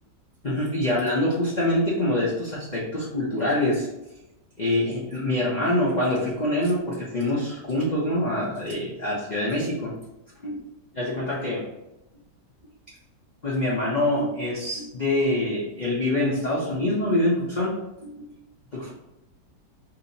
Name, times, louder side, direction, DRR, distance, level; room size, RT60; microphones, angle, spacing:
voice 1, 0.4-3.9 4.6-9.9 10.4-10.6 10.9-11.7 13.4-18.3 18.7-18.9, left 1 dB, 65° left, -6 dB, 0.4 m, -25 dB
2.9 x 2.6 x 3.9 m, 0.94 s
omnidirectional pair, 1.9 m